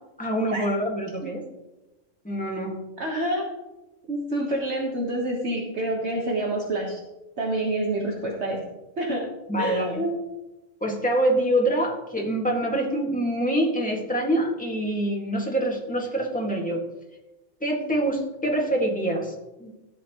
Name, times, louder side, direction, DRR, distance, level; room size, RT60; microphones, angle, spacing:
voice 1, 0.2-1.4 2.2-2.8 9.5-10.1 10.8-16.8 17.6-19.3 19.6-19.7, right 1 dB, 5° left, -1 dB, 1.8 m, -25 dB
voice 2, 3.0-3.4 4.1-7.0 7.4-8.6 9.0-9.3 9.6-10.2, right 1 dB, 60° right, -1 dB, 1.6 m, -27 dB
14.0 x 8.4 x 3.0 m, 1.0 s
omnidirectional pair, 1.3 m